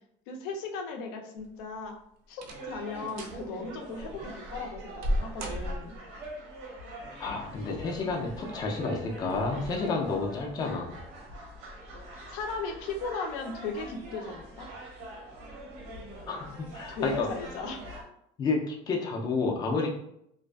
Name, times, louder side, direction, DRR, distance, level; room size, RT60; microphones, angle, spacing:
voice 1, 0.3-1.9 2.3-6.0 12.3-14.7 16.9-17.8, left 4 dB, 85° left, 3 dB, 0.5 m, -36 dB
sound 1, 1.4-1.8 2.3-2.8 3.1-3.4 4.0-6.2 7.4-7.9 8.4-8.5 9.2-9.4 9.8-9.9, equal, 50° right, 0.4 m, -35 dB
sound 2, 2.5-18.0, right 1 dB, 80° right, 0.8 m, -44 dB
voice 2, 7.2-11.0 16.3-17.3 18.4-19.9, left 3 dB, 20° left, 0 dB, 0.3 m, -30 dB
2.5 x 2.3 x 2.2 m, 0.74 s
cardioid pair, 155°, 19 cm